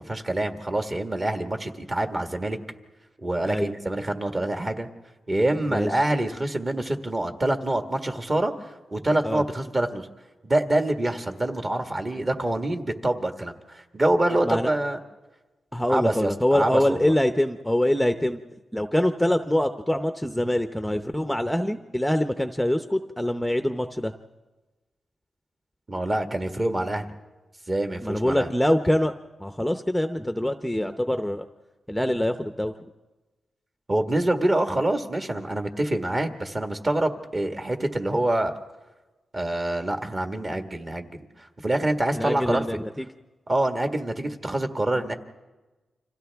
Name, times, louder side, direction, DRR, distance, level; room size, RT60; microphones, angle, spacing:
voice 1, 0.0-2.6 3.2-4.9 5.3-10.1 10.4-15.0 15.9-17.1 25.9-27.1 27.7-28.5 33.9-38.5 39.3-41.1 41.4-42.6 43.5-45.1, right 1 dB, 30° right, 5 dB, 1.6 m, -26 dB
voice 2, 15.7-18.4 18.7-24.1 28.0-29.1 29.4-31.4 31.9-32.7 42.1-43.0, left 1 dB, 5° left, 7 dB, 0.7 m, -24 dB
29.5 x 26.0 x 3.5 m, 1.2 s
cardioid pair, 85°, 0 cm